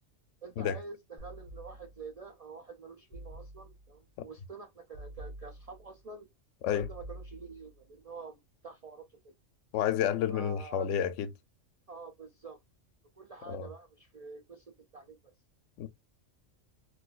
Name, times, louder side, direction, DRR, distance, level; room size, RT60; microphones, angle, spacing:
voice 1, 0.4-6.3 6.7-9.3 10.3-10.9 11.9-12.6 13.2-15.3, right 4 dB, 80° right, 0.3 m, -47 dB
sound 1, 1.2-2.2 3.1-4.0 4.9-6.0 6.8-7.9, right 1 dB, 20° left, 1.1 m, -48 dB
voice 2, 9.7-11.3 13.5-13.7 15.8-15.9, left 9 dB, 75° left, 0.9 m, -30 dB
3.9 x 2.5 x 2.4 m
omnidirectional pair, 1.3 m